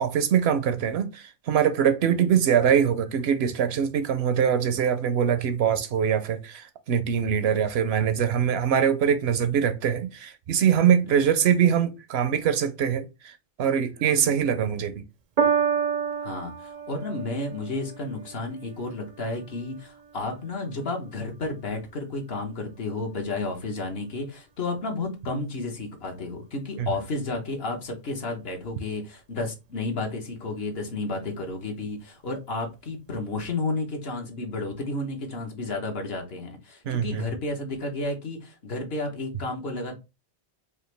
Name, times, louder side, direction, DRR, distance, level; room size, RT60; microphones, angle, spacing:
voice 1, 0.0-13.3 13.6-15.0 26.8-26.9 36.9-37.2, right 8 dB, 70° right, 0.8 m, -23 dB
voice 2, 2.0-2.4 11.0-11.3 14.0-14.5 16.2-40.0, left 2 dB, 65° left, 1.2 m, -32 dB
Piano, 15.4-22.0 22.8-22.9, right 7 dB, 55° right, 0.4 m, -31 dB
4.8 x 2.5 x 3.2 m
omnidirectional pair, 1.1 m